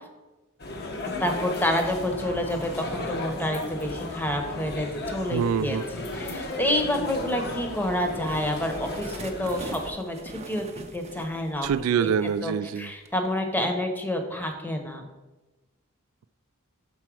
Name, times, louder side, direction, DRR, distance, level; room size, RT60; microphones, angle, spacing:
sound 1, 0.6-9.9, left 2 dB, 50° left, 0.9 m, -35 dB
voice 1, 1.0-10.7 10.9-11.7 12.0-12.1 12.4-15.0, left 1 dB, 10° left, 4 dB, 0.8 m, -28 dB
sound 2, 2.0-9.0, equal, 65° left, 1.2 m, -46 dB
voice 2, 5.3-5.8 11.6-12.9, right 7 dB, 85° right, 15 dB, 0.3 m, -25 dB
sound 3, 8.3-12.7 13.0-13.3, right 3 dB, 30° right, 0.6 m, -42 dB
6.0 x 4.3 x 6.1 m, 1.1 s
head